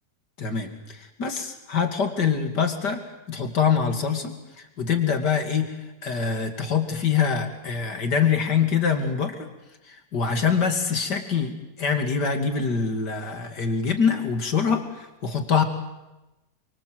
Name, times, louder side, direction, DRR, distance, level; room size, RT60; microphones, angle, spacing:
voice 1, 0.4-3.0 3.3-5.8 6.0-9.4 9.9-15.6, left 6 dB, 80° left, 6 dB, 3.2 m, -24 dB
30.0 x 24.0 x 8.0 m, 0.99 s
omnidirectional pair, 1.8 m